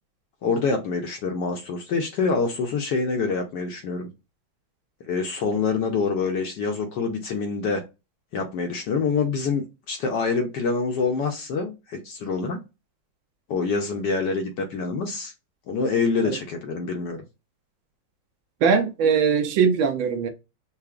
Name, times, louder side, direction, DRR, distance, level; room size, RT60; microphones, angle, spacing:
voice 1, 0.4-4.1 5.1-7.8 8.3-12.6 13.5-15.3 15.7-17.2, left 4 dB, 65° left, 1.1 m, -26 dB
voice 2, 18.6-20.3, right 6 dB, 75° right, 1.4 m, -21 dB
5.7 x 2.0 x 2.4 m
omnidirectional pair, 2.3 m